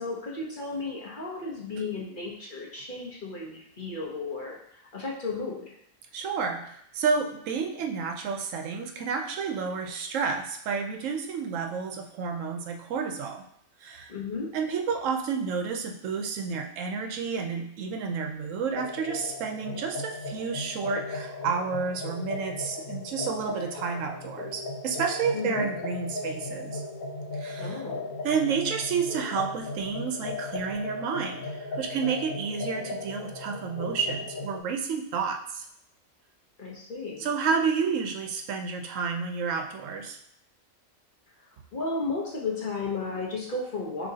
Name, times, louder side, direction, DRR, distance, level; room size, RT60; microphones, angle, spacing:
voice 1, 0.0-5.8 14.1-14.5 25.3-25.7 27.6-28.1 36.6-37.3 41.7-44.1, left 3 dB, 45° left, -3 dB, 0.9 m, -34 dB
voice 2, 6.1-13.4 13.8-14.1 14.5-26.8 27.4-27.8 28.2-35.6 37.2-40.2, right 5 dB, 75° right, 4 dB, 0.9 m, -30 dB
sound 1, 18.7-34.6, left 2 dB, 90° left, 1.2 m, -37 dB
6.3 x 3.0 x 2.7 m, 0.70 s
omnidirectional pair, 1.4 m